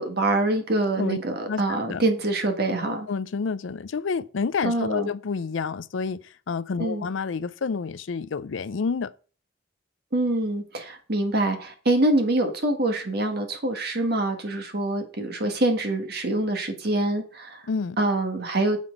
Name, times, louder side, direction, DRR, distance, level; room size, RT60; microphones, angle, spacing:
voice 1, 0.0-3.1 4.6-5.1 6.8-7.0 10.1-17.6 18.0-18.8, right 2 dB, 55° right, 1.6 m, -25 dB
voice 2, 1.5-2.0 2.9-9.1 17.7-18.0, left 5 dB, 85° left, 0.5 m, -29 dB
7.4 x 5.7 x 5.1 m
head